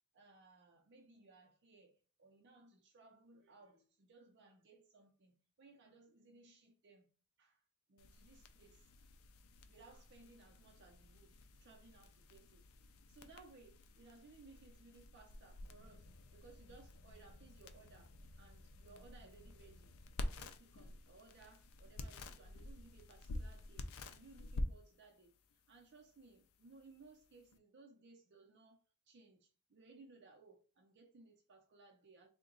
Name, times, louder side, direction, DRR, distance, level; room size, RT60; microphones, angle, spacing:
voice 1, 0.1-5.3 5.6-7.1 7.4-7.6 7.9-8.9 9.7-12.6 12.9-19.9 20.3-28.8 29.1-32.3, right 3 dB, 55° right, 0.6 m, -62 dB
sound 1, 8.0-27.6, left 1 dB, 75° left, 0.4 m, -50 dB
3.7 x 2.2 x 3.7 m
head